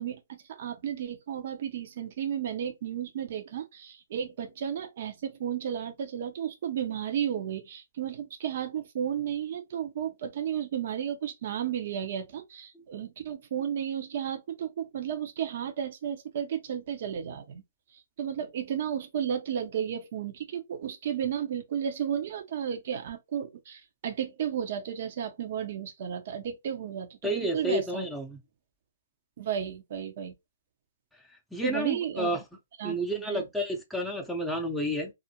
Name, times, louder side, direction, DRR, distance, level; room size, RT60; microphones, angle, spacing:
voice 1, 0.0-17.6 18.2-28.1 29.4-30.3 31.6-32.4 32.8-33.4, right 9 dB, 55° right, 0.6 m, -33 dB
voice 2, 27.2-28.4 31.5-32.4 32.8-35.1, equal, ahead, 0.6 m, -30 dB
2.4 x 2.1 x 2.8 m
hypercardioid pair, 130°, 0 cm